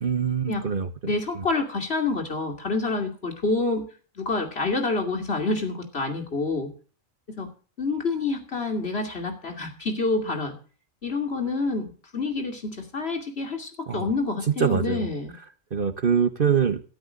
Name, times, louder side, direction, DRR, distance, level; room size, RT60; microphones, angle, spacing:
voice 1, 0.0-1.5 13.9-14.1 14.6-15.1 15.7-16.8, right 6 dB, 45° right, 10 dB, 1.2 m, -24 dB
voice 2, 1.0-3.9 4.2-6.7 7.4-7.5 7.8-10.5 11.0-15.3, left 3 dB, 50° left, 3 dB, 2.8 m, -27 dB
13.5 x 10.5 x 6.3 m, 0.38 s
omnidirectional pair, 1.3 m